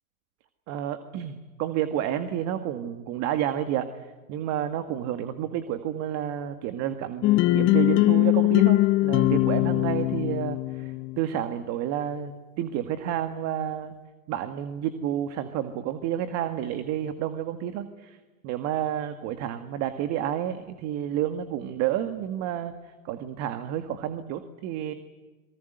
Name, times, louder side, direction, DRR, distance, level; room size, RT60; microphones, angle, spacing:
voice 1, 0.7-3.9 4.3-14.0 14.3-18.2 18.4-22.7 23.0-24.9, right 10 dB, 40° right, 9 dB, 1.9 m, -30 dB
sound 1, 7.2-11.2, left 18 dB, 30° left, 0.8 m, -21 dB
27.5 x 23.5 x 8.1 m, 1.2 s
hypercardioid pair, 120°, 43 cm